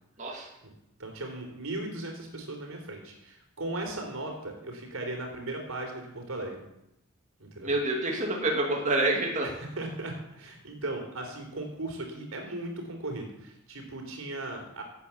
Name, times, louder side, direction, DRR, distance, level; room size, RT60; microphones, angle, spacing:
voice 1, 0.2-0.5 7.6-9.5, right 2 dB, 35° right, -1 dB, 2.4 m, -27 dB
voice 2, 1.0-6.6 7.4-7.7 9.4-9.5 9.8-14.8, right 2 dB, 75° right, 3 dB, 3.9 m, -37 dB
16.5 x 8.9 x 7.1 m, 0.85 s
head